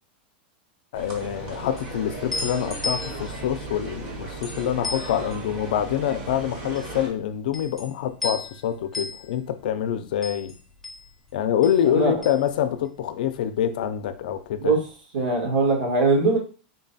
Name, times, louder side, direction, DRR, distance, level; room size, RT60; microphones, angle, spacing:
voice 1, 0.9-10.5 11.3-14.7, left 10 dB, 65° left, 10 dB, 0.4 m, -26 dB
sound 1, 0.9-7.1, right 3 dB, 40° right, 0.9 m, -36 dB
sound 2, 1.2-13.4 13.6-14.7, left 2 dB, 5° left, 0.6 m, -37 dB
voice 2, 15.1-16.4, right 3 dB, 70° right, -1 dB, 1.7 m, -21 dB
3.7 x 2.2 x 4.0 m, 0.38 s
supercardioid pair, 165°, 5 cm